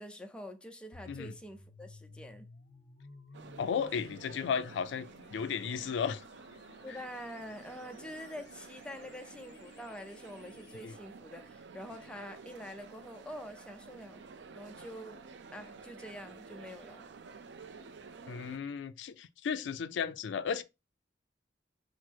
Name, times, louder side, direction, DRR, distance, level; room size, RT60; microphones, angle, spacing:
voice 1, 0.0-2.5 6.8-14.2 14.5-15.2 15.5-17.1, equal, 5° left, 0.5 m, -46 dB
sound 1, 0.9-10.9, left 2 dB, 60° left, 0.9 m, -56 dB
sound 2, 3.3-18.6, right 4 dB, 70° right, 0.5 m, -51 dB
voice 2, 3.6-6.2 10.8-10.9 18.3-20.6, left 6 dB, 80° left, 0.3 m, -34 dB
4.4 x 2.0 x 4.5 m
head